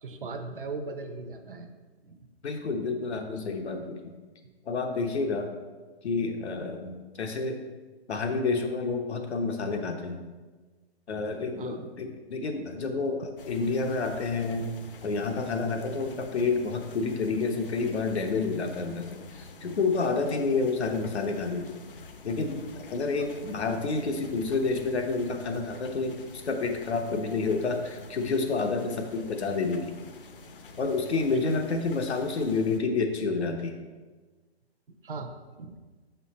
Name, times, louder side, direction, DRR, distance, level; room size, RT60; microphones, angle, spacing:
voice 1, 0.0-1.7 2.0-2.3 11.6-11.9 23.2-23.3 31.3-31.5 34.9-35.7, right 3 dB, 55° right, 6 dB, 0.6 m, -39 dB
voice 2, 2.4-4.2 4.7-5.5 6.0-7.6 8.1-10.2 11.1-14.7 15.0-21.7 22.2-29.9 30.8-33.8, left 4 dB, 80° left, 4 dB, 0.9 m, -29 dB
sound 1, 13.4-32.8, left 3 dB, 55° left, 0.6 m, -48 dB
5.6 x 5.5 x 4.1 m, 1.3 s
hypercardioid pair, 175°, 32 cm